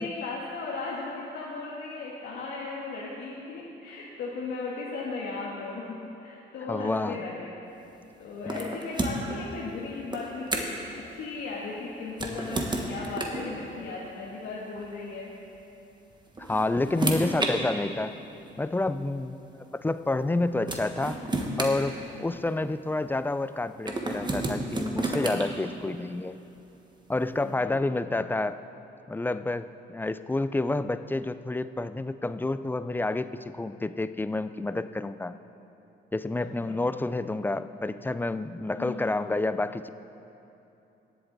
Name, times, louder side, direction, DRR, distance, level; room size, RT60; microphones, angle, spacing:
voice 1, 0.0-7.5 8.2-15.3 17.2-17.3 27.4-27.8 36.3-36.9 38.8-39.1, left 3 dB, 80° left, -6 dB, 1.5 m, -37 dB
voice 2, 6.7-7.2 8.5-8.8 16.4-18.1 18.6-21.2 21.6-26.4 27.1-28.6 29.1-35.4 36.1-39.9, left 2 dB, 10° left, 12 dB, 0.3 m, -29 dB
sound 1, 8.5-9.4 10.1-10.9 12.1-13.5 14.8-14.9 16.1-17.5 18.5-18.6 20.2-20.3 20.7-22.5 23.9-25.4, right 2 dB, 20° right, 1.3 m, -31 dB
18.5 x 7.8 x 3.9 m, 2.9 s
cardioid pair, 90°, 20 cm